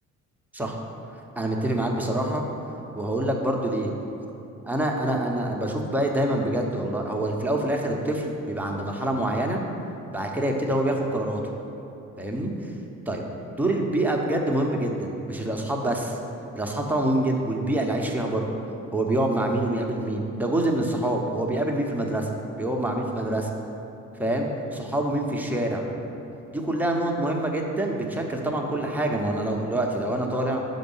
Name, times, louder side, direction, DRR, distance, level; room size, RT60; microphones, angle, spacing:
voice 1, 1.4-2.4 3.0-3.9 4.6-9.6 10.1-11.4 12.2-12.5 13.1-13.2 13.6-16.2 16.5-18.5 18.9-22.3 22.6-23.5 24.2-25.9 26.5-30.7, right 1 dB, 5° right, 0 dB, 0.9 m, -26 dB
5.9 x 5.2 x 5.5 m, 2.8 s
cardioid pair, 90°, 30 cm